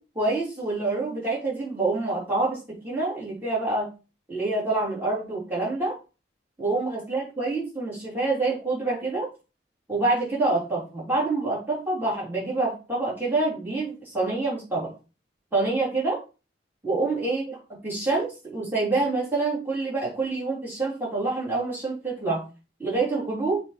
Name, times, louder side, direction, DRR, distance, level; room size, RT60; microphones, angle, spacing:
voice 1, 0.1-3.9 4.3-6.0 6.6-9.3 9.9-14.9 15.5-16.2 16.8-22.4 22.8-23.6, right 3 dB, 10° right, -7 dB, 3.1 m, -27 dB
7.4 x 3.0 x 4.8 m, 0.32 s
head